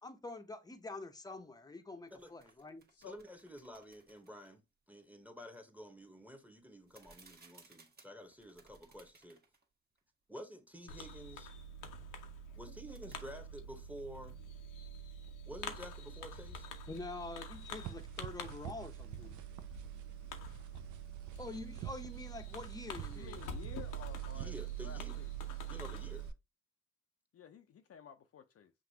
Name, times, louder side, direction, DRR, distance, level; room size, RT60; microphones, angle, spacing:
voice 1, 0.0-2.8 16.9-19.3 21.4-23.4, left 3 dB, 10° left, 0.7 m, -46 dB
sound 1, 2.1-4.6 6.8-9.6 10.0-10.1 12.6-13.2, right 4 dB, 30° right, 1.1 m, -63 dB
voice 2, 3.0-4.6 4.9-9.4 10.3-11.5 12.6-14.4 15.5-16.7 24.3-25.1 25.7-26.3, equal, 5° right, 1.0 m, -50 dB
Fireworks, 10.9-26.3, right 4 dB, 85° left, 0.8 m, -45 dB
sound 2, 17.5-26.3, right 11 dB, 75° right, 0.5 m, -51 dB
voice 3, 23.1-25.3 27.3-28.7, left 8 dB, 50° left, 0.6 m, -53 dB
6.0 x 2.5 x 2.7 m
supercardioid pair, 65°, 30 cm